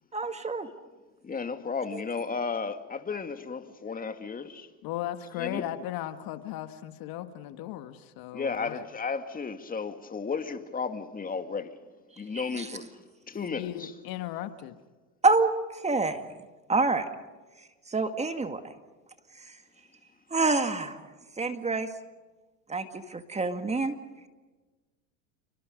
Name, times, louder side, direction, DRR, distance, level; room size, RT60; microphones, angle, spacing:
voice 1, 0.1-0.7 1.9-2.0 12.3-12.7 15.2-15.5 15.8-16.2 16.7-17.1 17.9-18.6 20.3-21.1 21.4-21.9 22.7-24.0, right 3 dB, 15° right, 2.0 m, -27 dB
voice 2, 1.2-4.7 5.4-5.6 8.3-11.8 12.2-13.0 13.3-13.9, left 5 dB, 20° left, 2.3 m, -34 dB
voice 3, 4.8-8.9 13.5-14.8, left 13 dB, 55° left, 1.7 m, -36 dB
28.5 x 24.5 x 5.3 m
supercardioid pair, 105°, 41 cm